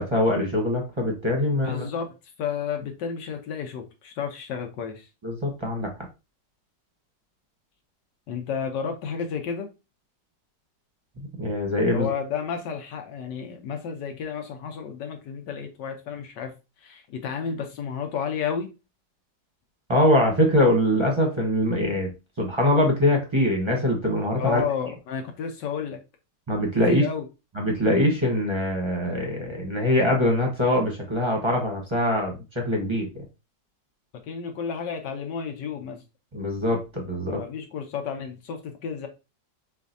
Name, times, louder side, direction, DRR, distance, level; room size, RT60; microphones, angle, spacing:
voice 1, 0.0-1.8 5.2-5.9 11.4-12.1 19.9-22.1 22.4-24.6 26.5-27.0 27.6-33.1 36.3-37.4, left 1 dB, 20° right, 0 dB, 0.8 m, -23 dB
voice 2, 1.6-5.1 8.3-9.7 11.9-16.5 16.8-18.7 24.4-26.0 26.9-27.3 34.3-36.0 37.3-39.1, left 7 dB, 75° left, 4 dB, 1.4 m, -31 dB
7.0 x 2.6 x 2.7 m, 0.28 s
omnidirectional pair, 1.9 m